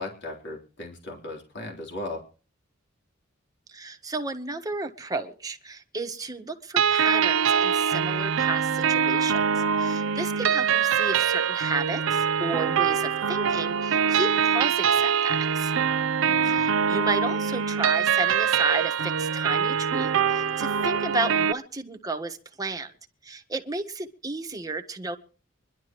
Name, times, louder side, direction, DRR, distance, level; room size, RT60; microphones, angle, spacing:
voice 1, 0.0-2.3 16.2-16.6, left 2 dB, 60° left, 0 dB, 3.6 m, -37 dB
voice 2, 3.7-15.7 16.4-22.9 23.2-25.2, right 3 dB, 20° right, 4 dB, 1.4 m, -32 dB
sound 1, 6.8-21.5, right 7 dB, 75° right, 0.6 m, -24 dB
25.0 x 11.5 x 3.0 m, 0.37 s
head